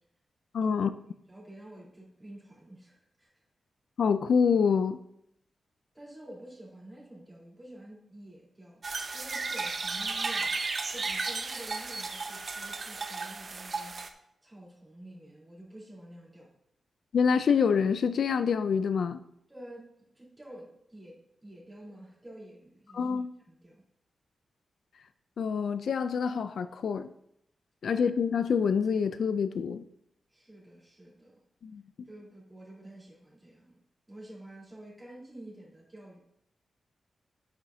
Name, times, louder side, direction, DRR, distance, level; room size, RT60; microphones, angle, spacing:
voice 1, 0.5-0.9 4.0-5.0 17.1-19.2 22.9-23.3 25.4-27.1 27.8-29.8 31.6-31.8, left 6 dB, 70° left, 0.4 m, -26 dB
voice 2, 1.3-3.4 5.9-8.8 9.1-10.6 10.9-16.5 19.5-23.1 23.5-23.8 30.3-31.4 32.0-33.8 34.1-36.2, right 1 dB, 15° right, 3.8 m, -49 dB
sound 1, 8.8-14.1, right 3 dB, 40° right, 0.7 m, -34 dB
9.4 x 8.9 x 2.8 m
wide cardioid pair, 150°, 0 cm